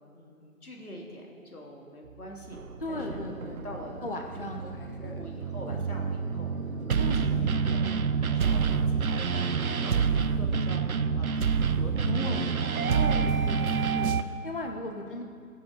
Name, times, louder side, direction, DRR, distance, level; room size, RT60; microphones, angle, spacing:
voice 1, 0.1-2.6 2.9-3.2 3.6-4.0 4.4-7.8 8.2-13.5 14.8-15.2, equal, 80° left, 0 dB, 2.3 m, -45 dB
sound 1, 2.0-9.3 10.0-12.5, right 2 dB, 90° right, 1.3 m, -50 dB
sound 2, 2.5-14.2, right 6 dB, 75° right, 0.6 m, -27 dB
voice 2, 2.8-3.6 4.0-5.2 5.6-6.2 6.9-7.9 12.0-15.2, left 1 dB, 40° left, 3 dB, 0.7 m, -37 dB
Thunder, 2.9-10.4, equal, 10° right, 1.4 m, -43 dB
17.0 x 7.0 x 3.9 m, 2.3 s
figure-of-eight pair, 165°, 44 cm